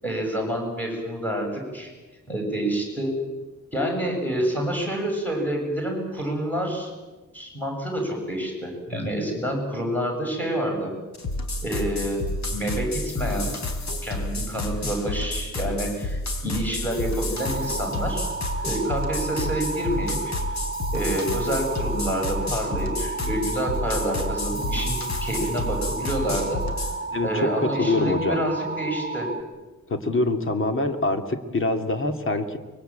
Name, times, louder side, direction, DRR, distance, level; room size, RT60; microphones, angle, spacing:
voice 1, 0.0-1.9 2.3-3.1 3.7-6.9 7.3-10.9 11.6-12.2 12.5-13.5 14.0-18.3 18.6-20.3 20.9-26.6 27.2-29.3, right 1 dB, 5° left, 1 dB, 7.6 m, -28 dB
sound 1, 11.1-27.0, left 1 dB, 55° left, 4.0 m, -30 dB
sound 2, 17.4-29.4, right 3 dB, 25° right, 2.6 m, -33 dB
voice 2, 27.1-27.5 27.8-28.4 29.9-32.6, left 2 dB, 40° left, 6 dB, 2.4 m, -24 dB
24.5 x 23.0 x 9.0 m, 1.2 s
wide cardioid pair, 175°, 33 cm